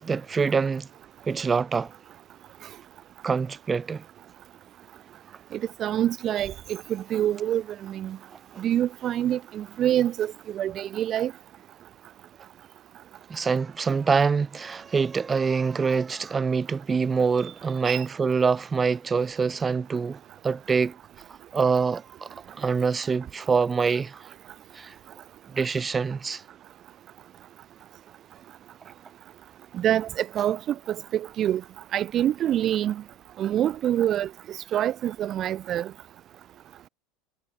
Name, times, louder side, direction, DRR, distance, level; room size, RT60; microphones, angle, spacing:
voice 1, 0.0-0.9 1.2-1.9 3.2-4.0 13.3-21.0 21.5-24.3 24.7-24.9 25.5-26.4, right 5 dB, 15° right, 1.5 m, -25 dB
voice 2, 5.5-8.2 8.6-11.3 17.8-18.0 29.7-31.6 31.9-33.0 33.4-35.9, right 11 dB, 35° right, 1.5 m, -26 dB
supercardioid pair, 145°, 0 cm